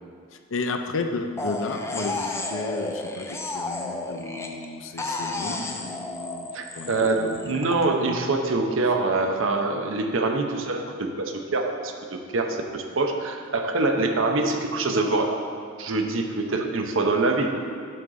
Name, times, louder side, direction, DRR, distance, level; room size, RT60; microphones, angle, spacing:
voice 1, 0.3-6.5 6.7-6.9 7.2-7.8, left 3 dB, 70° left, 6 dB, 0.6 m, -33 dB
sound 1, 1.4-4.7 5.0-7.9, left 2 dB, 15° left, 0.5 m, -32 dB
voice 2, 6.5-15.4 15.8-17.6, right 3 dB, 70° right, 4 dB, 0.7 m, -25 dB
8.8 x 3.8 x 6.2 m, 2.2 s
head